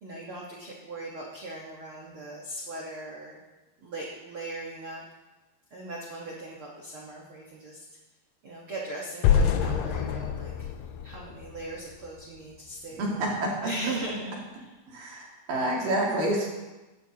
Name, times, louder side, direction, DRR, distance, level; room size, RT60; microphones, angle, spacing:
voice 1, 0.0-3.4 3.8-5.0 5.7-7.8 8.4-10.7 11.0-13.3 13.6-14.7 15.5-15.9, right 2 dB, 80° right, -3 dB, 1.2 m, -39 dB
sound 1, 9.2-12.2, left 8 dB, 80° left, 2.1 m, -26 dB
voice 2, 13.0-13.6 14.9-16.5, right 1 dB, 65° right, -3 dB, 3.7 m, -28 dB
15.5 x 11.0 x 2.9 m, 1.1 s
omnidirectional pair, 4.6 m